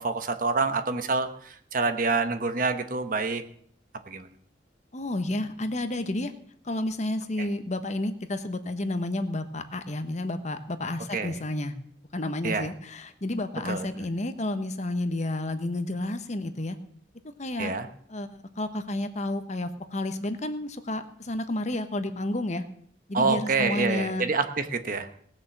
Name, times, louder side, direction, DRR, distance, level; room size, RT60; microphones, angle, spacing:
voice 1, 0.0-3.4 4.1-4.3 11.1-11.3 12.4-12.7 13.7-13.8 17.6-17.9 23.1-25.1, right 4 dB, 50° right, 9 dB, 1.0 m, -27 dB
voice 2, 4.9-6.3 6.6-11.8 12.1-16.8 17.4-17.7 18.1-22.6 23.1-24.3, left 1 dB, 40° left, 9 dB, 1.0 m, -31 dB
18.0 x 6.7 x 7.2 m, 0.63 s
head